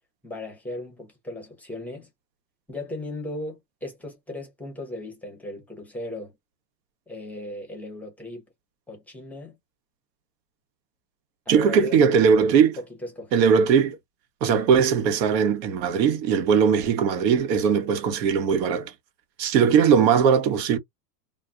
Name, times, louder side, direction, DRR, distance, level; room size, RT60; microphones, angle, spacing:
voice 1, 0.2-2.1 2.7-6.3 7.1-8.4 8.9-9.6 11.5-12.2 12.8-13.4, left 1 dB, 5° left, 0.6 m, -37 dB
voice 2, 11.5-12.8 13.3-14.0 14.4-18.9 19.4-20.8, right 7 dB, 80° right, 0.9 m, -20 dB
2.3 x 2.1 x 3.5 m
supercardioid pair, 140°, 50 cm